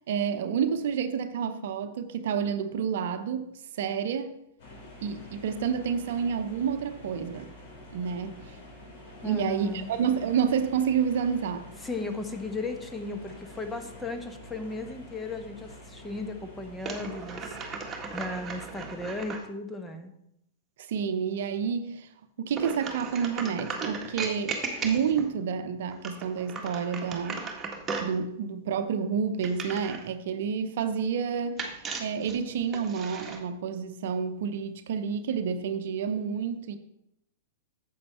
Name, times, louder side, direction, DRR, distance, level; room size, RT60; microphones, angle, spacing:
voice 1, 0.1-3.5 3.8-4.3 5.0-7.5 7.9-8.4 9.2-11.7 20.8-22.1 22.4-27.5 28.0-36.8, right 7 dB, 60° right, 0.8 m, -29 dB
sound 1, 4.6-19.2, left 1 dB, 50° left, 4.2 m, -47 dB
voice 2, 9.2-9.9 11.8-20.1, left 3 dB, 10° left, 1.1 m, -36 dB
sound 2, 16.8-19.4 22.5-25.3 25.9-28.2 29.4-30.1 31.6-33.4, right 4 dB, 20° right, 1.6 m, -36 dB
9.4 x 7.4 x 4.3 m
figure-of-eight pair, 105°, 0 cm